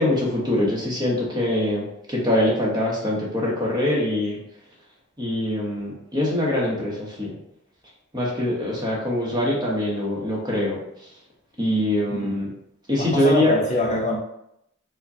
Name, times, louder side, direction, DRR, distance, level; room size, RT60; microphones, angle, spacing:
voice 1, 0.0-4.4 5.2-7.3 8.1-10.8 11.6-12.5 12.9-13.5, left 1 dB, 20° right, -4 dB, 0.8 m, -23 dB
voice 2, 13.0-14.2, left 2 dB, 30° left, -2 dB, 0.5 m, -24 dB
4.6 x 2.2 x 2.7 m, 0.78 s
head